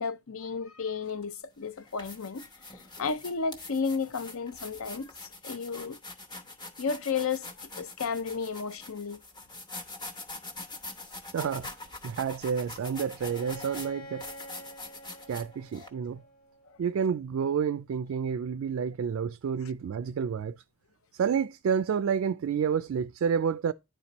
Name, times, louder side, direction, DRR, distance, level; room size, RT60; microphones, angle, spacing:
voice 1, 0.0-6.0 6.8-9.2 16.7-16.8, left 5 dB, 70° left, 0.6 m, -33 dB
sound 1, 1.1-1.2 1.8-15.9, left 2 dB, 20° left, 0.9 m, -44 dB
voice 2, 11.3-11.7 12.0-14.3 15.3-16.2 16.8-20.6 21.1-23.7, right 7 dB, 65° right, 0.3 m, -29 dB
Bowed string instrument, 13.2-16.9, right 1 dB, 90° left, 1.3 m, -48 dB
10.0 x 4.3 x 2.9 m
head